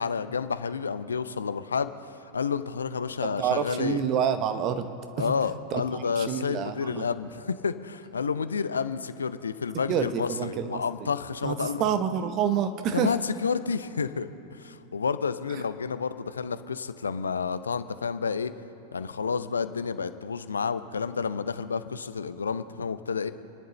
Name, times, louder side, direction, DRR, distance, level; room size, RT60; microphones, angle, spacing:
voice 1, 0.0-1.9 2.3-4.0 5.2-11.8 12.9-18.5 18.9-23.3, left 5 dB, 70° left, 12 dB, 0.6 m, -30 dB
voice 2, 3.2-5.3 5.7-7.1 9.9-11.1 11.4-13.1, right 8 dB, 35° right, 9 dB, 1.0 m, -28 dB
29.5 x 10.5 x 3.2 m, 2.9 s
figure-of-eight pair, 90°, 0 cm